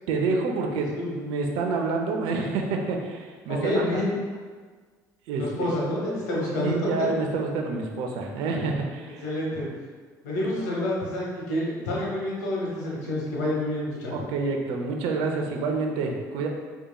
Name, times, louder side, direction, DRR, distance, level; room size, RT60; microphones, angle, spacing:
voice 1, 0.1-4.0 5.3-5.7 6.6-9.2 14.1-16.5, right 3 dB, 70° right, 2 dB, 0.6 m, -28 dB
voice 2, 3.5-4.1 5.4-6.9 9.2-9.7 10.2-14.2, left 1 dB, 85° left, -4 dB, 1.0 m, -28 dB
4.9 x 2.8 x 2.2 m, 1.5 s
hypercardioid pair, 70°, 9 cm